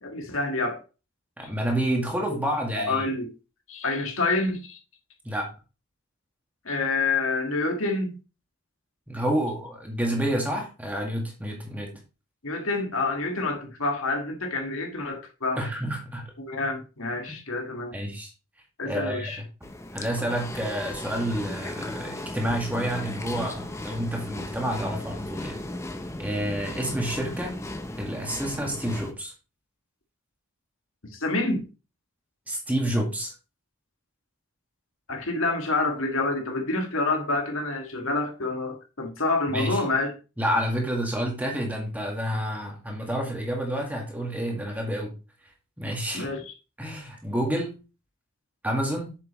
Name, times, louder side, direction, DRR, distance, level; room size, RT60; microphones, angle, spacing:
voice 1, 0.0-0.8 2.3-2.4 2.8-3.3 3.7-4.8 6.7-8.2 12.4-15.7 16.4-18.0 18.8-19.4 31.0-31.7 35.1-40.1 46.1-46.5, left 3 dB, 70° left, 1.7 m, -28 dB
voice 2, 1.4-3.1 5.3-5.5 9.1-11.9 15.6-16.3 17.3-17.4 17.9-18.3 18.9-19.5 19.9-25.6 26.2-27.5 28.0-29.3 32.5-33.3 39.5-39.8 40.4-45.1 45.8-46.3 46.8-47.7 48.6-49.2, right 1 dB, 5° right, 1.8 m, -29 dB
sound 1, 19.6-29.1, left 1 dB, 15° left, 0.7 m, -36 dB
8.3 x 6.7 x 3.0 m
head